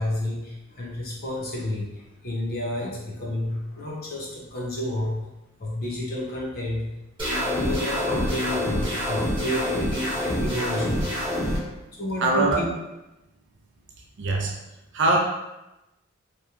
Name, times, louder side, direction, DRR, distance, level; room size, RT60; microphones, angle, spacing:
voice 1, 0.0-5.2 5.6-6.9 7.3-11.3 12.0-12.7, left 1 dB, 45° left, -3 dB, 0.7 m, -30 dB
sound 1, 7.2-11.6, equal, 25° right, 0.9 m, -26 dB
voice 2, 12.2-12.6 14.2-14.5 14.9-15.2, right 2 dB, 60° right, 1 dB, 0.4 m, -21 dB
2.9 x 2.2 x 2.4 m, 0.97 s
head